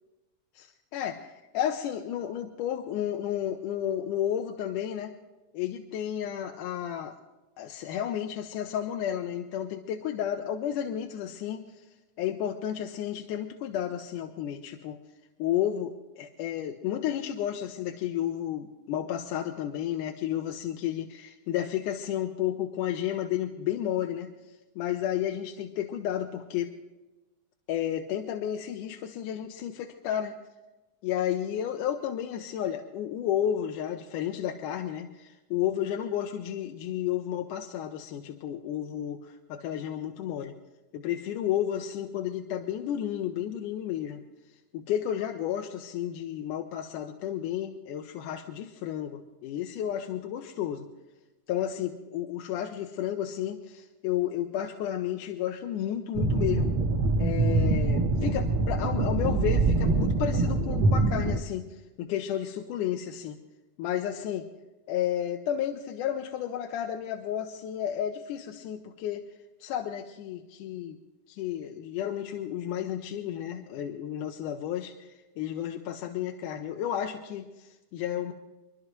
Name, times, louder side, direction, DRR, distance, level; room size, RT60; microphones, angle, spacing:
voice 1, 0.6-5.1 5.5-7.1 7.6-11.9 12.2-15.0 15.4-26.7 27.7-30.3 31.0-40.6 40.9-44.2 44.7-50.9 51.5-56.7 57.2-63.4 63.8-64.5 64.9-69.2 69.6-71.0 71.3-78.3, left 10 dB, 85° left, 4 dB, 2.4 m, -32 dB
sound 1, 56.1-61.4, right 3 dB, 80° right, 1.1 m, -24 dB
26.0 x 12.0 x 3.1 m, 1.1 s
omnidirectional pair, 3.7 m